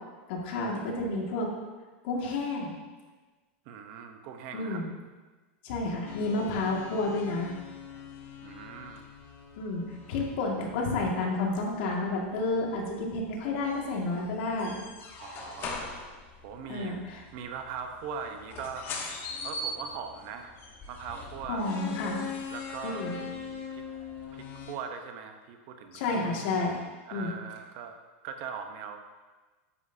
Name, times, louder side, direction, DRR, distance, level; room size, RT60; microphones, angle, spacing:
voice 1, 0.3-1.5 2.0-2.8 4.5-4.9 5.6-7.5 9.6-9.8 10.1-14.8 16.6-17.2 21.5-22.3 22.8-23.2 25.9-26.8 27.1-27.3, left 2 dB, 60° left, -1 dB, 1.9 m, -30 dB
voice 2, 3.7-4.8 8.4-9.0 15.2-15.9 16.4-17.0 17.3-18.9 19.4-20.6 20.9-21.7 22.5-23.8 24.3-26.0 27.1-28.0 28.2-29.0, right 7 dB, 50° right, 6 dB, 0.8 m, -40 dB
sound 1, 6.1-24.7, left 4 dB, 35° left, 1.1 m, -42 dB
9.7 x 7.9 x 2.7 m, 1.3 s
supercardioid pair, 145°, 7 cm